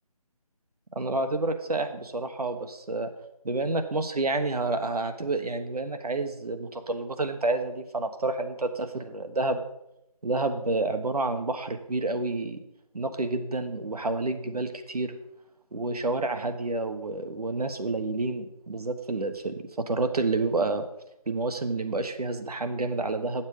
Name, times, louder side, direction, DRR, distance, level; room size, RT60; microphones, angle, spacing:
voice 1, 0.9-3.1 3.4-9.6 10.2-12.6 12.9-15.2 15.7-20.8 21.3-23.5, right 2 dB, 85° right, 7 dB, 1.2 m, -29 dB
8.6 x 7.3 x 5.0 m, 0.85 s
figure-of-eight pair, 180°, 19 cm